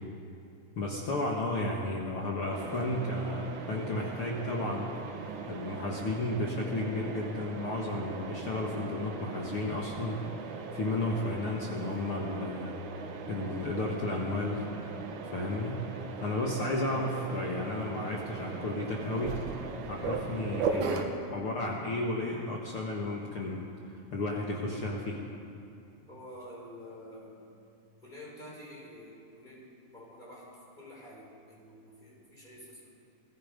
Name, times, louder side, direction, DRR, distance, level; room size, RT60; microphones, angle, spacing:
voice 1, 0.8-4.9 5.5-10.2 10.7-12.8 13.3-14.6 15.3-15.8 16.2-19.4 19.9-23.7 24.1-25.2, left 2 dB, 50° left, -2 dB, 2.1 m, -33 dB
Mechanisms, 2.5-21.0, right 5 dB, 70° right, 2.7 m, -39 dB
voice 2, 26.1-27.4 28.0-30.5 30.8-32.9, equal, 15° left, -4 dB, 5.7 m, -48 dB
28.5 x 18.0 x 5.3 m, 2.6 s
omnidirectional pair, 3.9 m